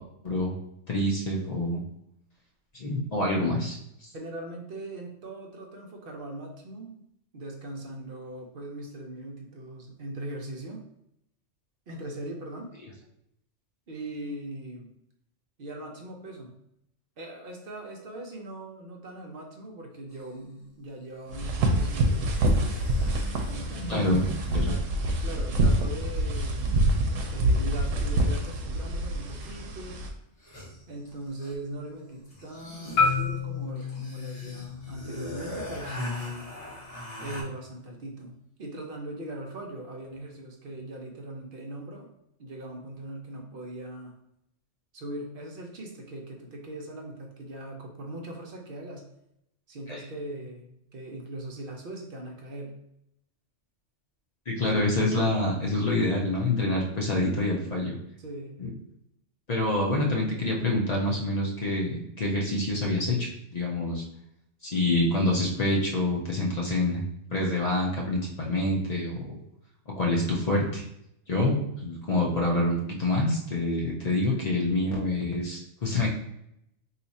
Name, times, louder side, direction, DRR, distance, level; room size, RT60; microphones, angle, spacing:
voice 1, 0.2-0.6 0.9-1.8 2.7-3.8 23.9-24.2 24.5-24.7 49.9-50.0 54.5-58.0 58.6-58.7 59.5-64.0 64.6-69.4 69.9-70.8 71.3-76.1, left 2 dB, 45° left, -2 dB, 0.5 m, -26 dB
voice 2, 4.1-7.0 7.3-10.8 11.9-12.7 13.9-14.9 15.6-16.6 17.2-22.2 23.5-24.0 24.6-24.9 25.2-27.1 27.3-30.0 30.9-36.5 37.2-42.1 42.4-44.2 44.9-49.1 49.7-52.8 58.2-58.6 74.3-74.6, right 1 dB, 55° right, 1 dB, 0.7 m, -40 dB
sound 1, 20.1-20.2 21.3-24.9 28.3-28.4 29.3-29.7 29.9-30.0 30.3-31.7 32.2-37.4, equal, 30° left, 1.0 m, -40 dB
sound 2, 21.3-30.1, right 1 dB, 80° right, 1.0 m, -26 dB
Marimba xylophone, 33.0-37.1, left 5 dB, 60° left, 1.0 m, -31 dB
2.8 x 2.4 x 4.0 m, 0.77 s
omnidirectional pair, 1.3 m